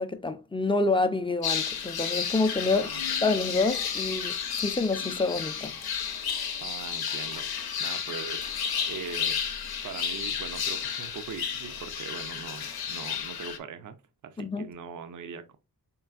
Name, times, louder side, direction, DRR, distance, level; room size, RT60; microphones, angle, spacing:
voice 1, 0.0-2.8 3.2-5.8 14.4-14.7, left 3 dB, 15° left, 0.5 m, -27 dB
sound 1, 1.4-13.6, left 7 dB, 85° left, 0.7 m, -32 dB
voice 2, 2.6-3.0 6.6-9.4 9.8-14.0 14.2-15.6, right 6 dB, 55° right, 0.5 m, -41 dB
sound 2, 2.7-6.1, left 7 dB, 80° right, 1.7 m, -49 dB
4.5 x 3.2 x 2.3 m
wide cardioid pair, 85°, 36 cm